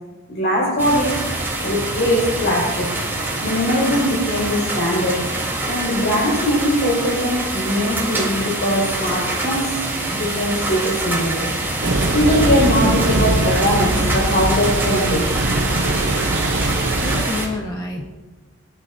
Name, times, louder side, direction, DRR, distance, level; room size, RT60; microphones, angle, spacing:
voice 1, 0.3-1.3 1.6-3.0 3.4-5.3 5.7-11.6 11.8-15.3, equal, 60° left, -5 dB, 5.5 m, -21 dB
sound 1, 0.8-17.5, right 2 dB, 10° right, 3.7 m, -25 dB
sound 2, 11.8-17.2, right 2 dB, 65° right, 1.0 m, -22 dB
voice 2, 16.9-18.1, left 2 dB, 20° left, -1 dB, 1.4 m, -28 dB
24.0 x 12.5 x 2.8 m, 1.2 s
head